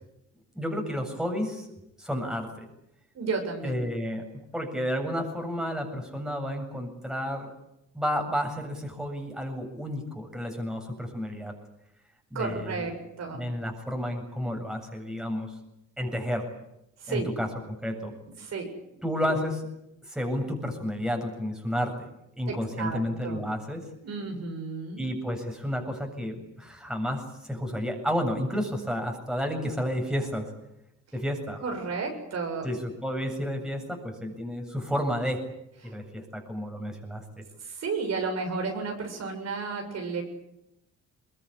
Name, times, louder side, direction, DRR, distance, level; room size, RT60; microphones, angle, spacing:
voice 1, 0.5-1.7 2.0-2.7 3.6-4.2 4.5-7.5 7.9-11.5 12.3-12.8 13.3-15.5 16.0-16.5 17.1-17.5 17.8-18.1 19.0-19.6 20.0-22.1 22.4-23.8 25.0-30.5 31.1-31.6 32.6-35.4 35.8-37.4, equal, ahead, 3 dB, 7.7 m, -31 dB
voice 2, 3.1-3.8 12.3-13.5 17.0-17.3 18.4-19.0 22.5-23.4 24.0-25.0 31.6-32.7 35.8-35.9 37.6-40.2, right 4 dB, 60° right, 3 dB, 7.6 m, -33 dB
23.0 x 22.0 x 10.0 m, 0.84 s
cardioid pair, 90°, 30 cm